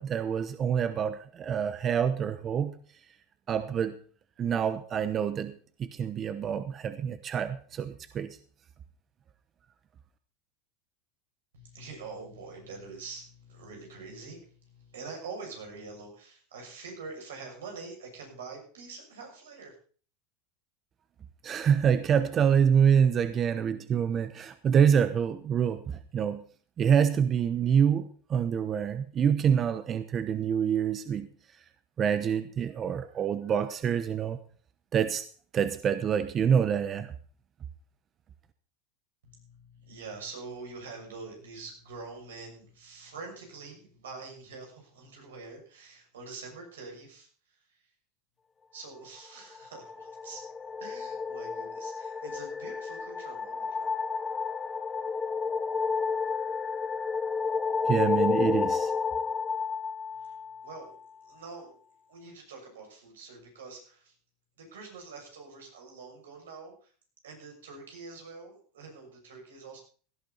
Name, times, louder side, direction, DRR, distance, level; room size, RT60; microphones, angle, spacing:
voice 1, 0.0-2.7 3.5-4.0 4.4-8.4 21.4-26.4 26.8-31.3 32.0-34.4 34.9-35.2 35.5-37.1 57.8-58.9, right 8 dB, 35° right, 12 dB, 0.9 m, -26 dB
voice 2, 11.5-19.7 39.2-47.3 48.7-50.4 50.8-53.9 60.2-60.3 60.6-61.0 61.2-61.8 62.1-64.1 64.6-66.9 67.2-69.8, right 4 dB, 90° right, 1 dB, 6.7 m, -45 dB
sound 1, 49.5-60.9, left 5 dB, 20° left, 0.6 m, -31 dB
17.0 x 12.0 x 4.1 m, 0.42 s
hypercardioid pair, 110°, 0 cm